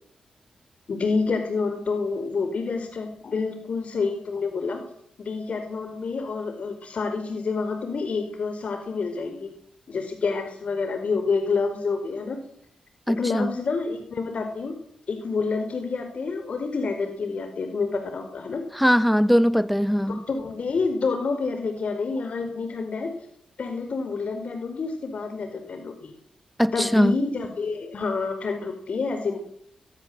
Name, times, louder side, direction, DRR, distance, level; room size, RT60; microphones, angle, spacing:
voice 1, 0.9-4.8 5.2-9.5 9.9-12.4 13.1-14.7 15.1-18.6 20.1-23.1 23.6-26.1 26.7-29.4, left 4 dB, 65° left, 4.7 m, -28 dB
voice 2, 13.1-13.5 18.7-20.2 26.6-27.2, equal, ahead, 1.3 m, -20 dB
23.0 x 22.0 x 7.9 m
supercardioid pair, 45°, 2 cm